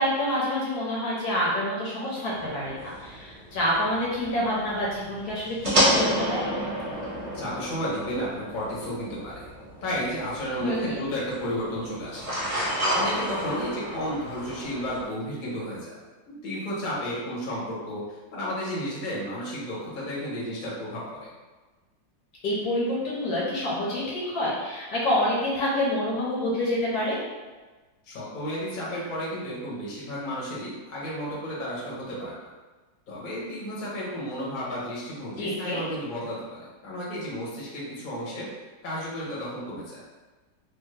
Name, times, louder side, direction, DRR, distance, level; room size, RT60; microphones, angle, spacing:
voice 1, 0.0-6.4 10.6-11.0 22.4-27.2 35.4-35.8, left 1 dB, 65° left, -5 dB, 1.1 m, -27 dB
sound 1, 2.3-15.0, right 1 dB, 30° right, 0.7 m, -31 dB
voice 2, 7.3-9.5 9.8-12.3 12.9-16.0 16.3-21.3 28.1-32.5 33.1-38.5 38.8-40.0, equal, 40° left, -7 dB, 0.7 m, -32 dB
3.3 x 2.0 x 3.1 m, 1.3 s
omnidirectional pair, 2.0 m